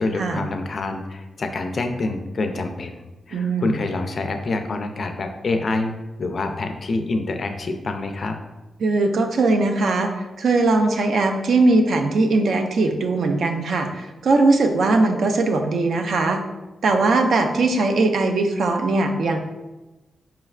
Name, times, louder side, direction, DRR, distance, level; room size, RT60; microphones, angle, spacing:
voice 1, 0.0-3.0 3.3-8.4, left 3 dB, 40° left, 6 dB, 0.3 m, -26 dB
voice 2, 3.3-3.7 8.8-16.4 16.8-19.4, right 3 dB, 65° right, 5 dB, 0.4 m, -20 dB
4.7 x 3.2 x 2.3 m, 1.1 s
wide cardioid pair, 155°, 0 cm